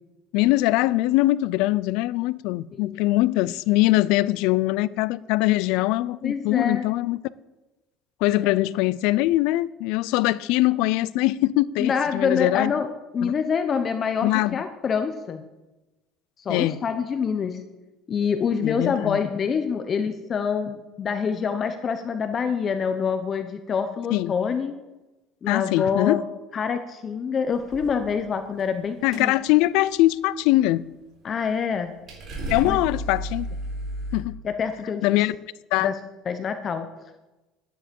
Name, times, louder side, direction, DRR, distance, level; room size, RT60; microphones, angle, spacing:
voice 1, 0.3-7.2 8.2-12.7 13.2-13.3 14.2-14.6 16.5-16.8 18.6-19.2 24.1-24.3 25.5-26.2 29.0-30.8 32.5-33.5 34.1-34.4 35.0-35.4 35.7-35.9, left 17 dB, 80° left, 0.4 m, -22 dB
voice 2, 6.2-6.8 8.4-8.5 11.8-12.9 13.1-15.4 16.4-17.6 18.1-24.7 25.4-26.2 26.5-29.3 31.2-31.9 32.6-32.8 34.4-35.2 35.8-35.9 36.3-36.9, left 6 dB, 35° left, 0.9 m, -26 dB
sound 1, 27.5-28.1 28.4-28.8 29.1-29.3 29.6-29.8 31.7-31.8 32.1-34.2, right 1 dB, 45° right, 4.2 m, -32 dB
12.5 x 10.0 x 5.3 m
cardioid pair, 125°, 0 cm